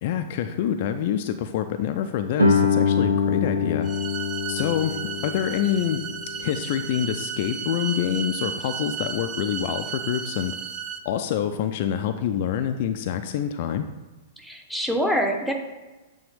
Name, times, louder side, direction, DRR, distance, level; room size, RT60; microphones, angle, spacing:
voice 1, 0.0-3.9 4.5-6.1 6.4-10.5 11.0-13.9, left 9 dB, 45° left, 8 dB, 0.4 m, -26 dB
Guitar, 2.4-7.7, left 4 dB, 80° right, 0.9 m, -25 dB
sound 1, 3.8-11.0, right 8 dB, 25° right, 0.4 m, -34 dB
voice 2, 14.4-15.5, equal, ahead, 2 dB, 0.8 m, -25 dB
8.4 x 3.5 x 3.3 m, 1.2 s
figure-of-eight pair, 105°, 0 cm